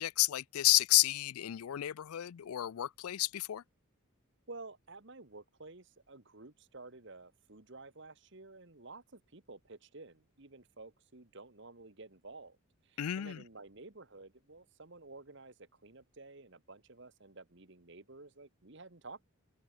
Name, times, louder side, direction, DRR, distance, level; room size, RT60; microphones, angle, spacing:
voice 1, 0.0-3.6 13.0-13.4, left 16 dB, 80° left, 0.4 m, -31 dB
voice 2, 4.5-12.6 12.8-19.2, right 3 dB, 55° right, 1.5 m, -52 dB
head